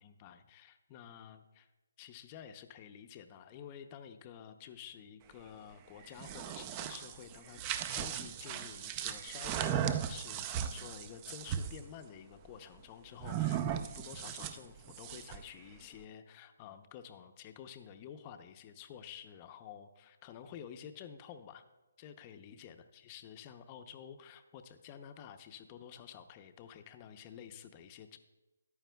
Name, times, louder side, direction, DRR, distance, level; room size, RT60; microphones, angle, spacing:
voice 1, 0.0-1.7 2.0-7.6 7.9-21.6 22.0-28.2, left 8 dB, 25° left, 8 dB, 0.6 m, -50 dB
sound 1, 6.0-11.8 13.2-15.5, right 9 dB, 20° right, 0.4 m, -37 dB
14.0 x 10.0 x 2.3 m, 1.1 s
hypercardioid pair, 155°, 0 cm